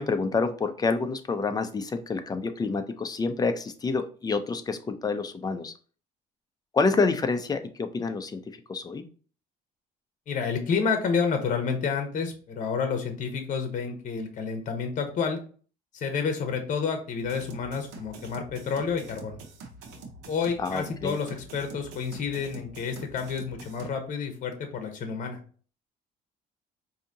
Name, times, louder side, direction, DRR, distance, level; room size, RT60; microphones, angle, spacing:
voice 1, 0.0-5.7 6.7-8.4 8.7-9.0 20.6-21.2, left 4 dB, 25° left, 8 dB, 0.5 m, -28 dB
voice 2, 10.3-15.4 15.9-19.4 20.3-25.4, left 5 dB, 50° left, 6 dB, 0.9 m, -29 dB
sound 1, 17.2-23.9, right 3 dB, 90° right, 0.8 m, -45 dB
4.8 x 2.8 x 2.7 m, 0.40 s
cardioid pair, 110°, 17 cm